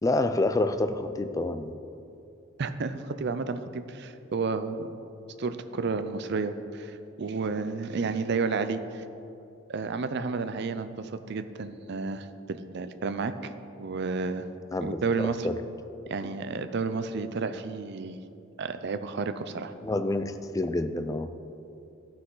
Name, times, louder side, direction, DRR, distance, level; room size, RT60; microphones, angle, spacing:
voice 1, 0.0-1.8 14.7-15.6 16.2-16.3 19.8-21.3, left 2 dB, 15° left, 9 dB, 0.3 m, -28 dB
voice 2, 2.6-4.9 5.4-9.0 9.7-13.5 13.8-14.5 14.8-15.5 16.1-18.2 18.6-19.7, right 4 dB, 55° right, 10 dB, 0.5 m, -31 dB
14.0 x 6.0 x 3.9 m, 2.7 s
head